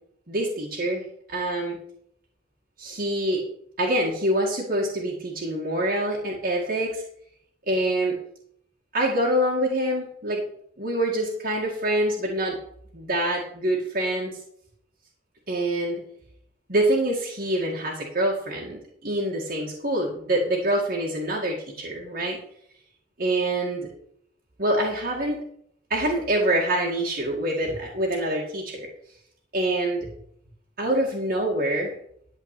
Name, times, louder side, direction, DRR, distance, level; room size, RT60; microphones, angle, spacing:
voice 1, 0.3-1.8 2.8-3.4 3.8-7.0 7.7-8.2 8.9-10.4 10.8-12.6 12.9-14.4 15.5-16.0 16.7-22.4 23.2-23.8 24.6-25.4 25.9-28.9 29.5-30.1 30.8-31.9, right 1 dB, 50° right, -3 dB, 2.0 m, -25 dB
12.0 x 4.5 x 8.3 m, 0.68 s
head